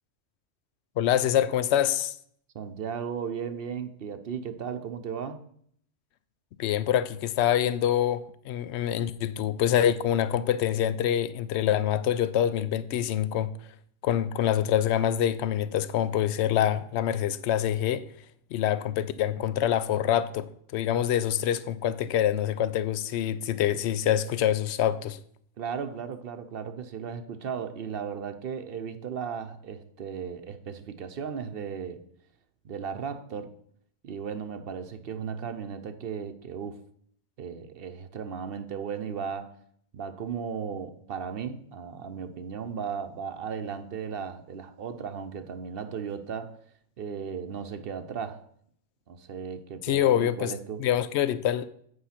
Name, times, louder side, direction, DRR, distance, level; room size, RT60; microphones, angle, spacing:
voice 1, 1.0-2.1 6.6-13.5 14.0-18.0 18.5-20.5 20.7-25.2 49.8-50.5 50.8-51.7, left 10 dB, 70° left, 0.8 m, -25 dB
voice 2, 2.5-5.4 25.6-32.0 32.6-33.5 34.0-36.8 37.4-39.5 39.9-46.6 47.0-48.4 49.1-50.8, right 7 dB, 55° right, 0.8 m, -36 dB
8.5 x 4.8 x 5.8 m
omnidirectional pair, 1.3 m